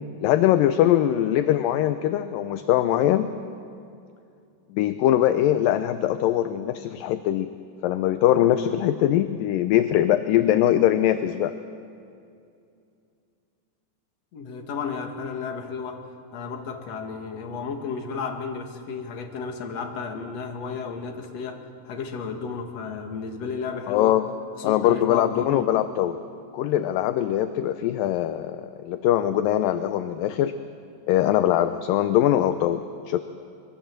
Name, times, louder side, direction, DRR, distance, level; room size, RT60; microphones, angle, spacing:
voice 1, 0.0-3.3 4.7-7.5 7.8-11.5 23.9-24.3 24.6-26.2 26.5-30.5 31.1-33.2, left 12 dB, 75° left, 10 dB, 2.2 m, -22 dB
voice 2, 14.3-16.1 16.3-24.2 24.6-25.7, left 5 dB, 50° left, 4 dB, 2.7 m, -33 dB
25.5 x 22.0 x 7.5 m, 2.5 s
omnidirectional pair, 4.4 m